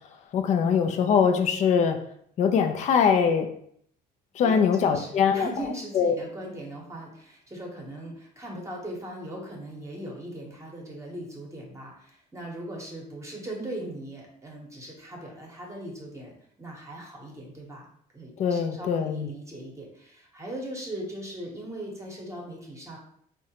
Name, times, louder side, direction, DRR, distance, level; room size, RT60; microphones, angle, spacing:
voice 1, 0.3-2.0 2.4-3.5 4.4-5.5 5.9-6.2 18.4-19.3, left 6 dB, 45° left, 6 dB, 0.4 m, -22 dB
voice 2, 4.4-16.3 16.6-17.9 18.1-23.0, right 1 dB, 15° right, -2 dB, 0.9 m, -39 dB
3.6 x 2.1 x 2.8 m, 0.66 s
cardioid pair, 110°, 17 cm